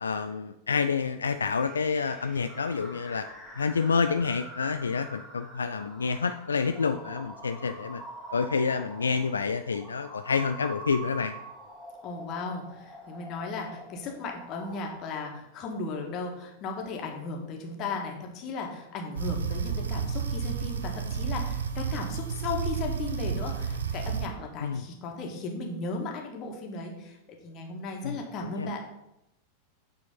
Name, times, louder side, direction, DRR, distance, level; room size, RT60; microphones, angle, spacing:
voice 1, 0.0-3.3 3.6-8.0 8.3-11.4 24.6-24.8 28.0-28.7, left 5 dB, 75° left, 9 dB, 0.3 m, -28 dB
sound 1, 1.2-15.0, right 1 dB, 5° right, 2.2 m, -45 dB
voice 2, 12.0-27.2 27.4-28.8, left 3 dB, 35° left, 1 dB, 1.7 m, -36 dB
sound 2, 19.2-24.3, right 6 dB, 70° right, 0.7 m, -31 dB
8.6 x 4.4 x 5.5 m, 0.87 s
figure-of-eight pair, 90°, 0 cm